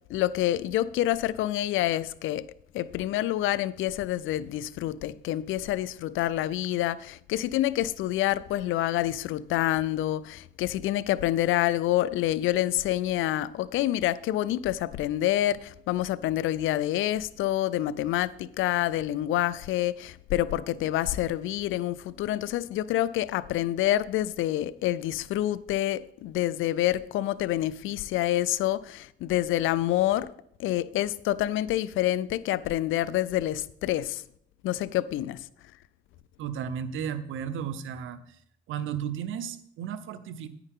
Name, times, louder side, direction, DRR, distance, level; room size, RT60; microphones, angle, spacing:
voice 1, 0.1-2.5 2.7-30.3 30.6-34.2 34.6-35.4, left 13 dB, 85° left, 0.5 m, -27 dB
voice 2, 36.4-38.4 38.7-40.5, right 8 dB, 80° right, 0.8 m, -34 dB
9.8 x 9.7 x 3.6 m
cardioid pair, 90°, 20 cm